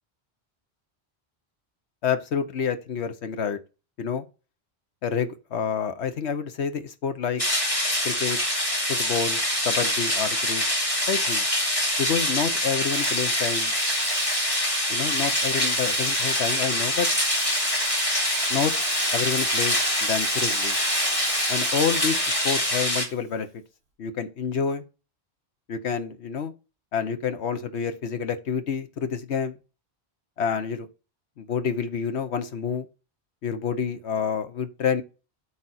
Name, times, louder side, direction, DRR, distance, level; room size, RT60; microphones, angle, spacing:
voice 1, 2.0-3.6 4.0-4.2 5.0-7.4 8.0-8.4 8.9-9.4 9.6-10.6 11.1-11.4 12.0-13.7 14.9-17.1 18.5-18.7 19.1-20.8 21.5-23.6 24.0-24.8 25.7-26.5 26.9-29.6 30.4-30.9 31.4-32.9 33.4-35.0, left 6 dB, 85° left, 1.2 m, -28 dB
sound 1, 7.4-23.0, left 1 dB, 30° left, 2.6 m, -25 dB
Drill, 12.8-23.2, right 3 dB, 70° right, 1.9 m, -41 dB
8.6 x 5.0 x 4.2 m
omnidirectional pair, 1.1 m